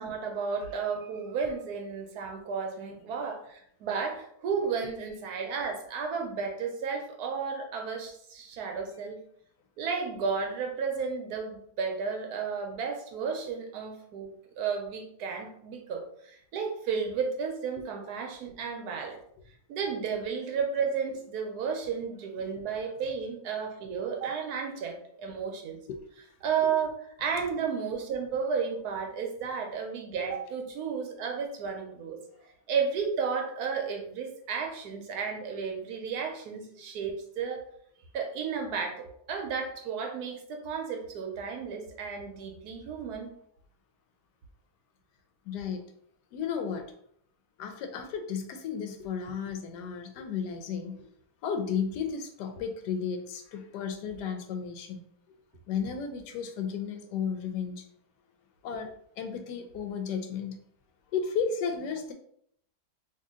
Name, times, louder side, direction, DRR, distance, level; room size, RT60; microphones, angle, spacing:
voice 1, 0.0-9.2 9.8-14.3 14.6-19.2 19.7-25.8 26.4-32.2 32.7-37.6 38.1-43.3, right 6 dB, 75° right, 3 dB, 1.1 m, -33 dB
voice 2, 45.5-45.9 46.3-46.9 47.6-51.1 51.4-55.0 55.7-57.8 58.6-60.6 61.1-62.1, left 6 dB, 85° left, 6 dB, 1.2 m, -33 dB
2.7 x 2.7 x 3.6 m, 0.68 s
omnidirectional pair, 1.7 m